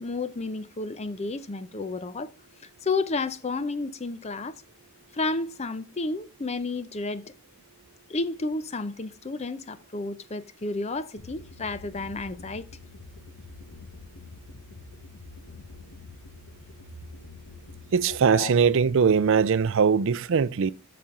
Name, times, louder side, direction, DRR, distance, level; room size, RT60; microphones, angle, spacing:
voice 1, 0.0-2.3 2.6-4.6 5.1-7.3 8.1-12.7 18.1-18.5, left 3 dB, 30° left, 0.6 m, -31 dB
sound 1, 11.2-18.2, left 3 dB, 80° left, 1.2 m, -46 dB
voice 2, 17.9-20.7, right 6 dB, 60° right, 0.4 m, -21 dB
13.0 x 4.3 x 3.7 m
head